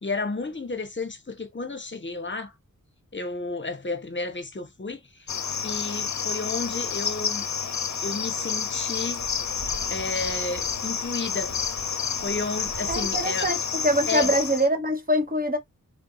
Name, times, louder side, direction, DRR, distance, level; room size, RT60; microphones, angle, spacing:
voice 1, 0.0-2.5 3.1-5.3 5.6-7.5 8.0-9.2 9.9-11.5 12.2-13.5 14.1-14.3, left 3 dB, 35° left, 1.0 m, -32 dB
Cricket, 5.3-14.7, left 6 dB, 55° left, 0.7 m, -29 dB
sound 1, 9.0-14.4, right 4 dB, 45° right, 0.7 m, -45 dB
voice 2, 12.9-15.6, equal, 25° right, 1.1 m, -24 dB
3.7 x 2.6 x 3.8 m
wide cardioid pair, 50°, 33 cm